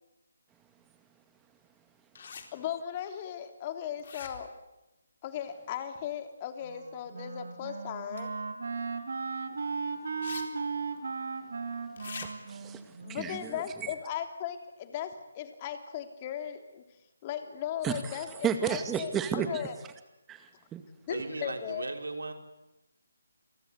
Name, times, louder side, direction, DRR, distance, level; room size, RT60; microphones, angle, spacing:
sound 1, 2.1-2.5 4.0-4.6 8.2-8.3 10.2-10.4 10.7-10.8 12.0-12.3, left 6 dB, 50° left, 3.8 m, -43 dB
voice 1, 2.5-4.5 5.2-8.3 13.0-16.8 17.2-19.1 19.5-19.7 21.1-21.8, left 9 dB, 30° left, 7 dB, 3.2 m, -37 dB
Wind instrument woodwind instrument, 6.6-13.8, right 4 dB, 60° right, 3.5 m, -37 dB
voice 2, 11.9-13.9 17.8-19.7 20.3-20.8, right 8 dB, 10° right, 8 dB, 2.2 m, -34 dB
voice 3, 21.1-22.3, right 3 dB, 75° right, 6 dB, 3.6 m, -36 dB
29.5 x 23.5 x 8.3 m, 0.98 s
figure-of-eight pair, 150°, 0 cm